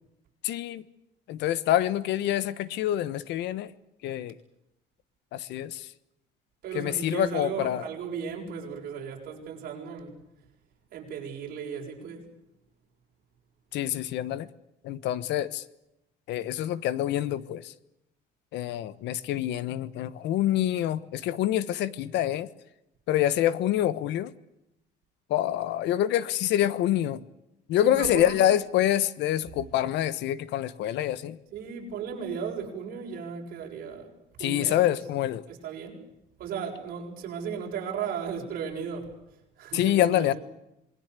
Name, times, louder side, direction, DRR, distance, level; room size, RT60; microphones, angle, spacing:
voice 1, 0.4-0.8 1.3-3.7 4.0-4.3 5.3-5.9 6.7-7.8 13.7-14.5 14.8-15.6 16.3-17.7 18.5-22.5 23.1-24.3 25.3-27.2 27.7-31.4 34.4-35.4 39.7-40.3, left 12 dB, 75° left, 1.3 m, -26 dB
voice 2, 6.6-10.2 10.9-12.2 27.8-28.4 31.5-34.1 34.4-35.0 35.5-36.0 36.4-39.1 39.6-40.3, right 6 dB, 50° right, 7.3 m, -35 dB
27.0 x 21.0 x 8.4 m
cardioid pair, 180°, 18 cm